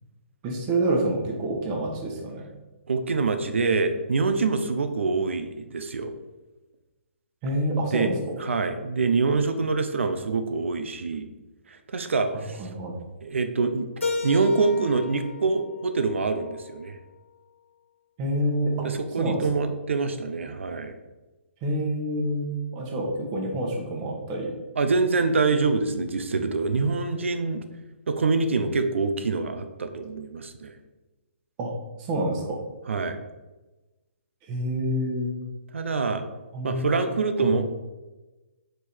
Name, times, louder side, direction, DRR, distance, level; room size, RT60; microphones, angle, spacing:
voice 1, 0.4-2.4 7.4-8.4 12.3-13.0 18.2-18.9 19.2-19.4 21.6-24.5 31.6-31.7 32.1-32.6 34.5-35.3 36.5-37.0 37.4-37.5, right 1 dB, 30° right, 0 dB, 1.3 m, -27 dB
voice 2, 2.9-6.1 7.9-8.1 8.4-11.3 11.7-12.7 13.2-13.9 14.2-17.0 18.8-21.0 24.8-27.6 28.1-30.7 32.9-33.2 35.7-36.2 36.6-37.6, right 4 dB, 70° right, 8 dB, 0.6 m, -25 dB
Keyboard (musical), 14.0-16.9, left 3 dB, 85° left, 1.7 m, -34 dB
5.2 x 4.6 x 4.4 m, 1.1 s
figure-of-eight pair, 130°, 7 cm